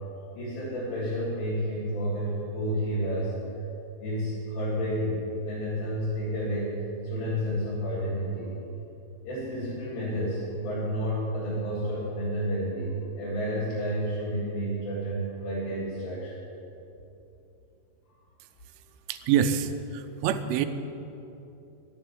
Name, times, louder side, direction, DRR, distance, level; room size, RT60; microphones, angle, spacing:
voice 1, 0.4-3.3 4.0-5.2 5.4-8.5 9.3-16.3, equal, 85° left, -10 dB, 5.9 m, -30 dB
voice 2, 19.1-20.7, right 8 dB, 90° right, 10 dB, 3.2 m, -26 dB
12.0 x 10.5 x 8.8 m, 2.9 s
omnidirectional pair, 5.4 m